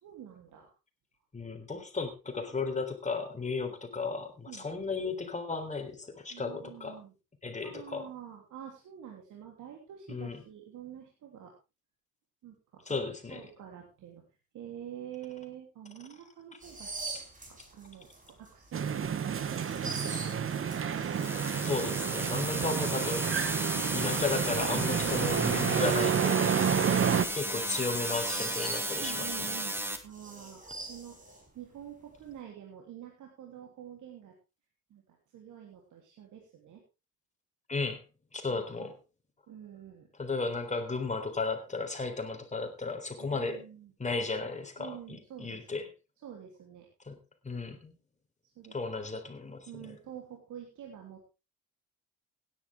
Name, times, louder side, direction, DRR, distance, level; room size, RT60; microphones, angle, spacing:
voice 1, 0.0-0.7 3.6-3.7 4.5-4.7 6.3-7.1 7.6-11.5 12.4-12.8 13.3-14.2 14.5-16.9 17.4-20.5 27.6-27.9 28.9-30.6 30.9-31.2 31.5-34.3 34.9-36.8 38.5-38.9 39.5-40.1 43.2-43.9 44.8-45.9 46.2-46.9 48.5-48.7 49.6-51.3, right 10 dB, 80° right, 0 dB, 3.2 m, -47 dB
voice 2, 1.3-7.0 7.4-8.1 10.1-10.4 12.9-13.4 21.6-23.5 23.9-26.4 27.3-29.3 37.7-38.0 38.3-39.0 40.2-43.6 44.0-45.8 47.0-47.2 47.4-47.9 48.7-49.9, left 3 dB, 25° left, 5 dB, 3.7 m, -34 dB
sound 1, 16.6-29.4 29.8-31.9 32.2-32.4, right 2 dB, 25° right, 5.0 m, -45 dB
sound 2, 18.7-27.2, right 7 dB, 45° right, 1.3 m, -30 dB
sound 3, 21.1-30.0, right 1 dB, 5° right, 2.2 m, -34 dB
16.5 x 10.5 x 3.6 m, 0.29 s
cardioid pair, 90°, 30 cm